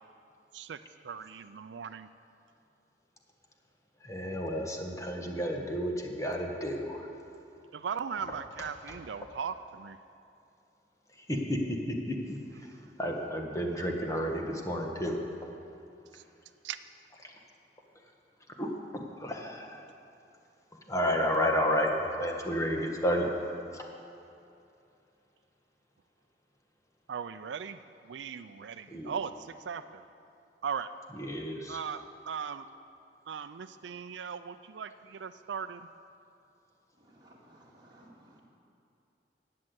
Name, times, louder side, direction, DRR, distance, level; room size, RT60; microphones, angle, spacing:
voice 1, 1.0-2.1 7.7-10.0 16.1-16.2 16.6-16.8 27.1-30.0 30.6-30.9 31.7-32.7 33.3-35.9, right 6 dB, 85° right, 10 dB, 0.4 m, -38 dB
voice 2, 4.0-7.1 8.3-9.0 11.2-12.7 13.0-15.2 17.2-17.3 18.6-19.8 20.9-23.3 23.7-23.8 28.9-29.1 31.1-31.8, equal, 20° left, 1 dB, 1.4 m, -32 dB
voice 3, 37.0-38.4, right 1 dB, 25° right, -5 dB, 2.3 m, -58 dB
12.0 x 8.6 x 8.0 m, 2.7 s
head